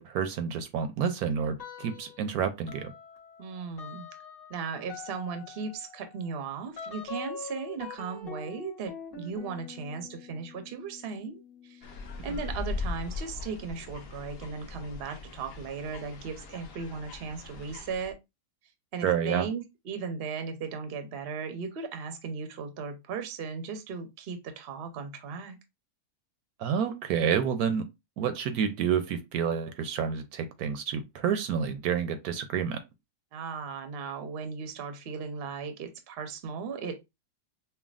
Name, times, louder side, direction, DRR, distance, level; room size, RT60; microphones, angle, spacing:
voice 1, 0.0-2.9 19.0-19.5 26.6-27.9 28.2-32.8, right 7 dB, 75° right, 1.0 m, -29 dB
sound 1, 1.6-2.3 2.7-13.0, left 5 dB, 40° left, 1.3 m, -45 dB
voice 2, 3.4-4.1 4.5-18.1 18.9-25.6 33.3-37.2, right 5 dB, 55° right, 0.7 m, -37 dB
sound 2, 11.8-18.1, left 3 dB, 60° left, 0.6 m, -39 dB
5.7 x 2.2 x 2.4 m
omnidirectional pair, 1.7 m